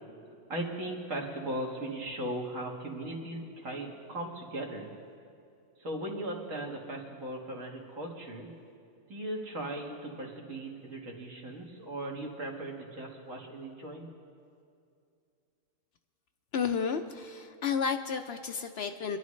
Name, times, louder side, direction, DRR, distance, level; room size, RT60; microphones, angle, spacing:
voice 1, 0.5-4.9 5.8-8.5 9.1-14.1, right 1 dB, 75° right, -1 dB, 2.2 m, -38 dB
voice 2, 16.5-19.2, left 6 dB, 60° left, 7 dB, 0.7 m, -32 dB
26.0 x 11.0 x 3.2 m, 2.4 s
omnidirectional pair, 1.4 m